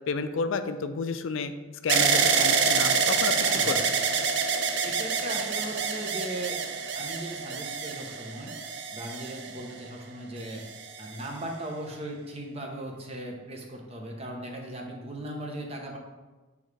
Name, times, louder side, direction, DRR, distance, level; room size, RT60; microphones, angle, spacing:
voice 1, 0.1-1.5 1.8-3.4 3.6-3.9, left 4 dB, 70° left, 9 dB, 0.4 m, -31 dB
sound 1, 1.9-9.9 10.6-11.3, right 5 dB, 60° right, 0.5 m, -27 dB
voice 2, 3.4-3.8 4.8-6.6 6.9-8.5 8.9-10.6 11.0-16.0, right 1 dB, 30° right, 1 dB, 0.8 m, -38 dB
8.7 x 3.5 x 3.2 m, 1.2 s
head